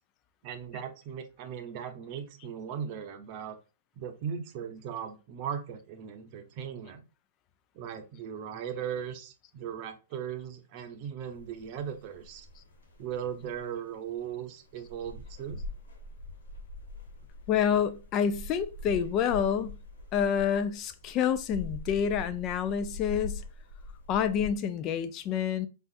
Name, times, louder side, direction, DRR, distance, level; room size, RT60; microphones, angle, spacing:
voice 1, 0.4-3.6 3.9-7.0 7.7-12.5 13.0-15.6, right 8 dB, 45° right, 0.7 m, -38 dB
sound 1, 11.3-24.6, left 2 dB, 75° left, 1.2 m, -43 dB
voice 2, 17.5-19.8 20.1-23.4 24.1-25.7, left 8 dB, 35° left, 0.4 m, -28 dB
3.8 x 2.4 x 2.5 m
hypercardioid pair, 120°, 0 cm